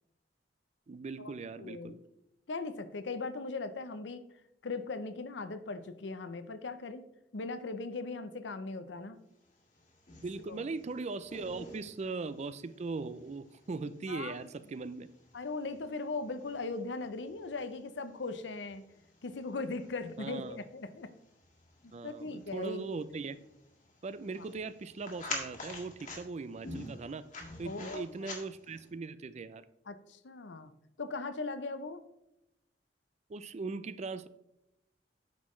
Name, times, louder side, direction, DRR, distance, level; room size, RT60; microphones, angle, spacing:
voice 1, 0.9-2.0 10.2-15.1 20.2-20.6 21.9-23.4 24.0-27.3 27.6-29.6 33.3-34.3, right 4 dB, 40° right, 0.4 m, -39 dB
voice 2, 1.6-2.0 2.5-4.2 4.6-7.1 7.3-9.2 10.5-10.6 14.1-14.4 15.3-18.8 19.2-21.1 21.8-22.8 27.7-28.3 29.9-30.7 31.0-32.0, left 3 dB, 90° left, 0.7 m, -39 dB
sound 1, 9.5-28.9, left 2 dB, 50° left, 1.9 m, -49 dB
9.4 x 6.4 x 3.1 m
head